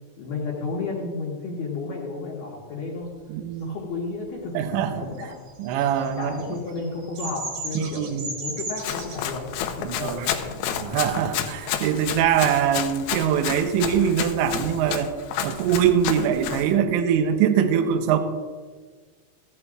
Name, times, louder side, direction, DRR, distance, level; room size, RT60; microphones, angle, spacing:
voice 1, 0.2-3.1 3.6-5.3 6.2-10.6, left 3 dB, 70° left, -4 dB, 2.1 m, -32 dB
voice 2, 3.3-3.7 4.5-5.0 5.6-6.3 7.8-8.2 9.8-10.3 10.8-15.1 15.4-18.2, right 9 dB, 80° right, 8 dB, 2.9 m, -23 dB
Bird vocalization bird call bird song, 5.5-9.2, right 2 dB, 55° right, 4.4 m, -34 dB
Run, 8.8-16.7, left 9 dB, 90° left, 2.3 m, -30 dB
15.5 x 12.0 x 2.4 m, 1.5 s
omnidirectional pair, 5.7 m